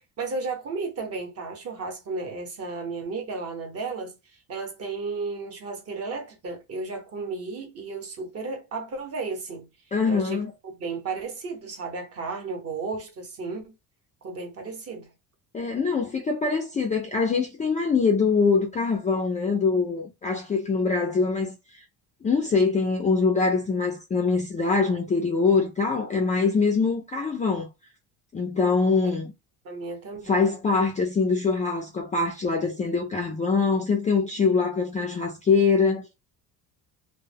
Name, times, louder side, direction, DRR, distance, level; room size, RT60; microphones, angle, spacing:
voice 1, 0.2-9.7 10.1-13.7 14.2-15.1 29.6-30.4 32.6-32.7, right 4 dB, 40° right, 0.8 m, -34 dB
voice 2, 9.9-10.5 15.5-21.8 22.2-27.7 28.3-29.3 30.3-36.1, left 4 dB, 20° left, 0.3 m, -23 dB
2.1 x 2.1 x 3.3 m
cardioid pair, 140°, 39 cm